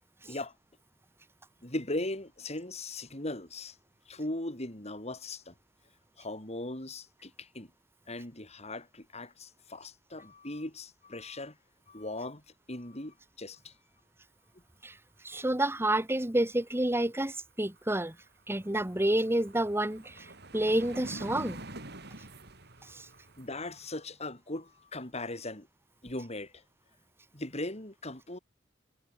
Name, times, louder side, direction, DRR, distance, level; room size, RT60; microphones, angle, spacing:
voice 1, 1.6-3.8 4.1-5.5 6.2-7.7 8.1-11.6 11.9-12.4 12.7-13.7 15.3-15.5 23.4-25.7 26.0-26.6 27.3-28.4, left 2 dB, 35° left, 5.7 m, -39 dB
voice 2, 15.2-18.1 18.5-21.6 22.9-23.1, right 1 dB, 15° right, 1.6 m, -29 dB
sound 1, 17.8-17.9 18.1-23.9, right 2 dB, 60° right, 6.2 m, -46 dB
head